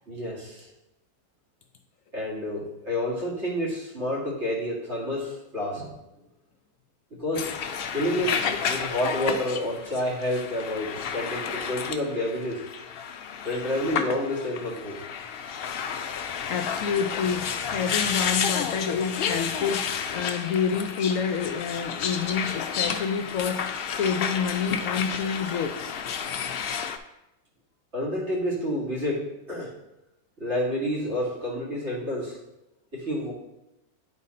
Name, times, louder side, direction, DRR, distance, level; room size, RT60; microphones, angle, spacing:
voice 1, 0.1-0.7 2.1-6.0 7.1-12.6 13.4-15.0 27.9-29.7 30.4-32.4 32.9-33.3, left 1 dB, 45° right, -5 dB, 2.4 m, -29 dB
sound 1, 7.3-27.0, left 7 dB, 85° left, 0.5 m, -31 dB
voice 2, 16.2-25.9, left 6 dB, 70° left, 6 dB, 0.9 m, -28 dB
9.3 x 3.9 x 4.2 m, 0.92 s
omnidirectional pair, 1.6 m